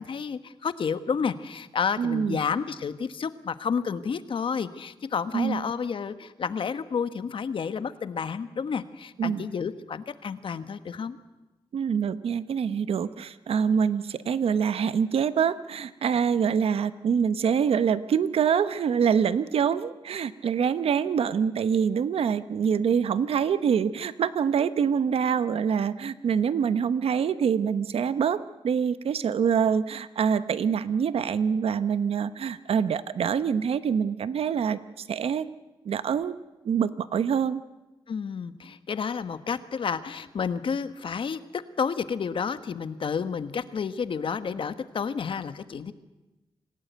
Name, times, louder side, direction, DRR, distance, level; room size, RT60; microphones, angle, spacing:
voice 1, 0.0-11.2 38.1-45.9, left 6 dB, 60° left, 12 dB, 1.3 m, -30 dB
voice 2, 2.0-2.4 5.3-5.7 9.2-9.5 11.7-34.8 35.1-35.5 35.8-36.3 36.6-37.6, right 7 dB, 80° right, 14 dB, 0.9 m, -25 dB
26.0 x 17.0 x 9.4 m, 1.1 s
wide cardioid pair, 110°, 10 cm